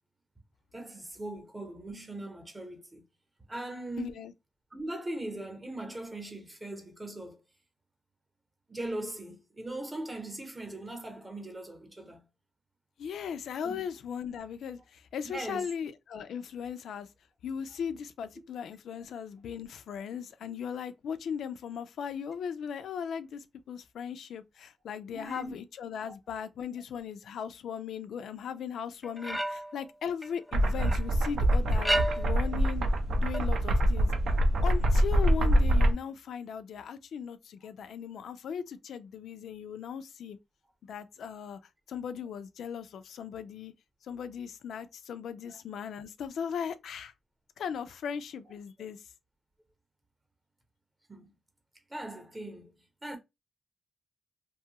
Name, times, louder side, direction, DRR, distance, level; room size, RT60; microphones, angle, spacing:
voice 1, 0.7-3.0 3.5-4.1 4.7-7.4 8.7-12.2 13.6-13.8 15.2-15.7 18.9-19.0 25.1-25.5 45.5-45.6 51.1-51.3 51.9-52.7 53.0-53.2, right 1 dB, 15° right, 0.8 m, -40 dB
voice 2, 4.0-4.3 13.0-17.1 17.4-32.8 33.2-34.1 34.6-40.4 40.9-41.6 41.9-43.7 44.0-47.1 47.6-49.1, left 7 dB, 85° left, 0.3 m, -38 dB
sound 1, 29.0-29.8 30.2-31.1 31.7-32.5 33.3-33.4, right 1 dB, ahead, 0.3 m, -32 dB
sound 2, 30.5-35.9, equal, 75° right, 0.5 m, -25 dB
2.7 x 2.3 x 2.8 m
wide cardioid pair, 125°, 0 cm